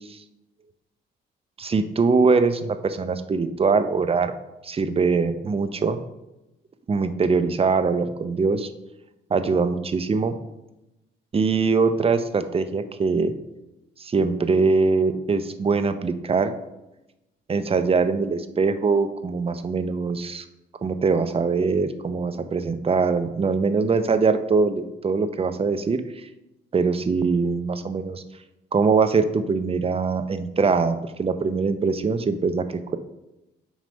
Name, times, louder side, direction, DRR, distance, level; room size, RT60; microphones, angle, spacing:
voice 1, 1.6-4.3 4.6-6.0 6.9-8.7 9.3-10.3 11.3-13.3 14.0-16.5 17.5-20.4 20.8-26.0 26.7-28.2 28.7-32.6, right 4 dB, 30° right, 10 dB, 0.6 m, -22 dB
7.6 x 3.2 x 5.2 m, 0.96 s
cardioid pair, 90°, 20 cm